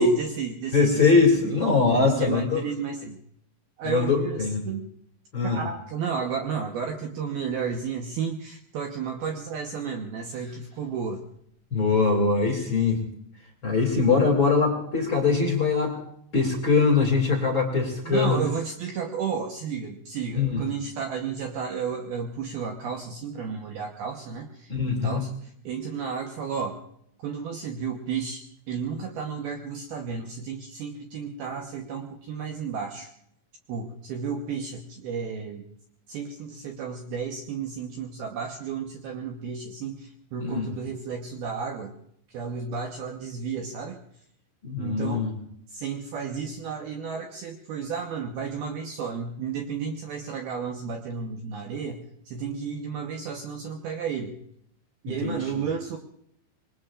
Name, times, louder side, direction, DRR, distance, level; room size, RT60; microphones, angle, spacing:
voice 1, 0.0-3.2 3.8-4.9 5.4-11.2 18.0-26.8 27.2-33.1 33.7-35.7 36.1-41.9 42.3-44.0 44.8-45.3 45.7-54.4 55.0-56.0, right 6 dB, 70° right, 2 dB, 2.5 m, -32 dB
voice 2, 0.7-2.6 3.8-4.6 5.3-5.6 11.7-13.0 13.6-16.0 16.3-18.4 20.3-20.6 24.7-25.3 40.4-40.7 44.6-45.3 55.1-55.4, left 4 dB, 35° left, 0 dB, 2.4 m, -22 dB
26.5 x 22.0 x 2.5 m, 0.70 s
omnidirectional pair, 5.5 m